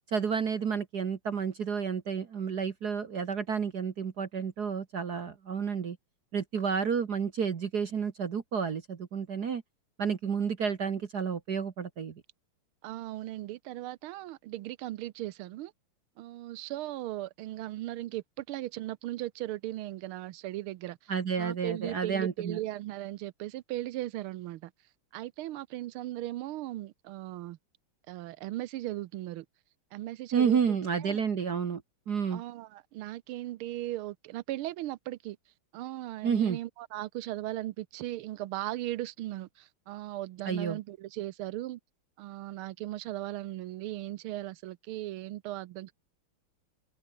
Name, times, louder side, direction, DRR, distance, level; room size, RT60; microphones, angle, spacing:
voice 1, 0.1-6.0 6.3-9.6 10.0-12.2 21.1-22.6 30.3-32.4 36.2-36.6 40.4-40.8, right 6 dB, 50° right, 1.9 m, -30 dB
voice 2, 12.8-15.7 16.2-21.0 21.4-24.7 25.1-27.6 28.1-29.4 29.9-30.8 31.0-31.2 32.3-35.4 35.7-41.8 42.2-45.9, right 15 dB, 80° right, 1.5 m, -37 dB
omnidirectional pair, 2.4 m